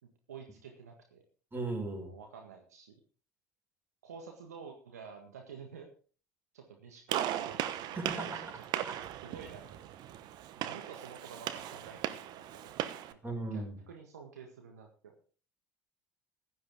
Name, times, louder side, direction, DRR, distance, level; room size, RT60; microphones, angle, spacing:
voice 1, 0.0-1.2 2.0-2.9 4.0-5.9 6.5-8.4 8.7-8.9 9.2-9.8 10.6-15.3, right 6 dB, 80° right, 3 dB, 1.7 m, -50 dB
voice 2, 1.5-2.1 7.9-8.4 8.8-9.0 13.2-13.8, right 2 dB, 25° right, 3 dB, 6.1 m, -37 dB
Gunshot gunfire, 7.1-13.1, right 11 dB, 55° right, 1.0 m, -38 dB
15.5 x 11.5 x 3.7 m, 0.39 s
figure-of-eight pair, 60°, 8 cm